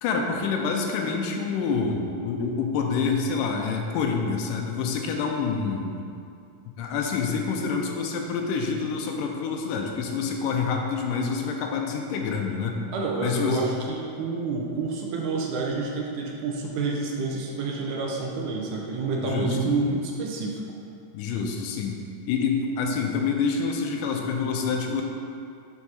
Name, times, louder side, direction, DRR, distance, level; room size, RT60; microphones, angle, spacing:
voice 1, 0.0-6.1 6.8-12.8 13.2-13.6 19.2-19.6 21.1-22.0 22.3-25.0, left 5 dB, 85° left, 2 dB, 2.2 m, -27 dB
voice 2, 12.9-20.6, right 3 dB, 75° right, -1 dB, 2.1 m, -28 dB
6.2 x 4.8 x 5.6 m, 2.5 s
omnidirectional pair, 3.9 m